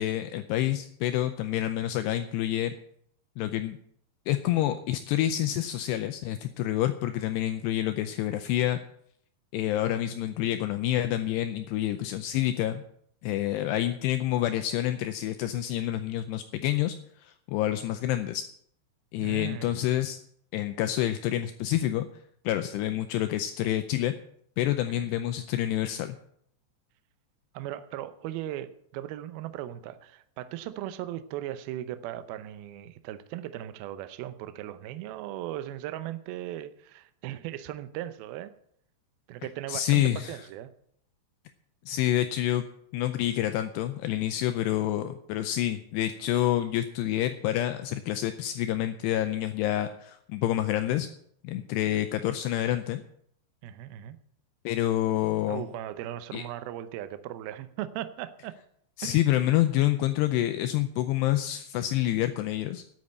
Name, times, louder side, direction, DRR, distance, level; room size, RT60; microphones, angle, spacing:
voice 1, 0.0-2.7 3.4-3.8 4.3-8.8 9.5-12.8 13.2-18.4 19.1-20.2 20.5-22.1 22.5-24.1 24.6-26.2 39.7-40.3 41.9-42.7 42.9-51.1 51.4-53.0 54.7-55.6 56.3-56.4 59.0-62.8, left 13 dB, 80° left, 9 dB, 2.5 m, -28 dB
voice 2, 19.2-19.9 24.9-25.3 27.5-38.5 39.3-40.7 53.6-54.2 55.5-58.6 59.0-59.2, right 13 dB, 80° right, 11 dB, 2.2 m, -38 dB
9.6 x 8.7 x 8.5 m, 0.68 s
omnidirectional pair, 5.2 m